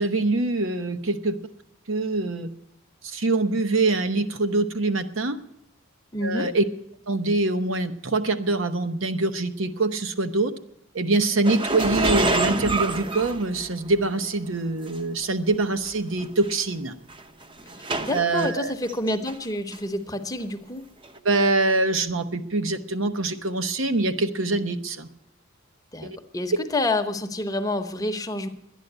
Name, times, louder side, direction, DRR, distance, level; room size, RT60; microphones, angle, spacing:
voice 1, 0.0-1.4 1.9-2.5 3.0-5.4 6.2-6.6 7.1-10.5 10.9-16.9 18.1-18.8 21.2-25.1 26.0-26.2, right 2 dB, 65° right, 9 dB, 1.0 m, -24 dB
voice 2, 6.1-6.5 18.0-20.8 25.9-28.5, left 2 dB, 15° left, 7 dB, 0.9 m, -28 dB
sound 1, 11.4-14.0 14.9-15.0 15.9-16.0 16.2-16.5 17.1-18.5 18.9-19.4 19.7-19.8 21.0-21.1, right 2 dB, 25° right, 0.8 m, -27 dB
12.0 x 10.0 x 8.0 m, 0.76 s
head